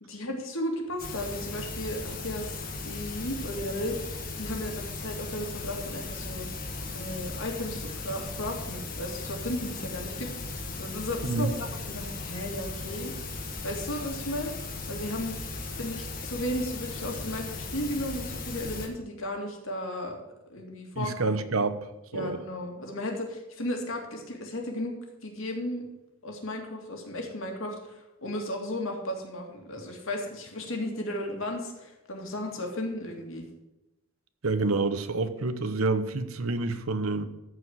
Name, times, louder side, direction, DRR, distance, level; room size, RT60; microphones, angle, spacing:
voice 1, 0.0-6.5 6.9-10.3 10.5-13.1 13.6-14.5 14.9-15.3 15.8-20.2 20.5-21.1 22.1-24.9 25.2-25.8 26.2-33.5, left 1 dB, 65° left, 2 dB, 2.3 m, -35 dB
sound 1, 1.0-18.9, left 3 dB, 40° left, 1.6 m, -37 dB
voice 2, 11.2-11.5 20.9-22.4 34.4-37.2, right 3 dB, 75° right, 10 dB, 0.9 m, -28 dB
14.0 x 4.9 x 7.8 m, 0.97 s
head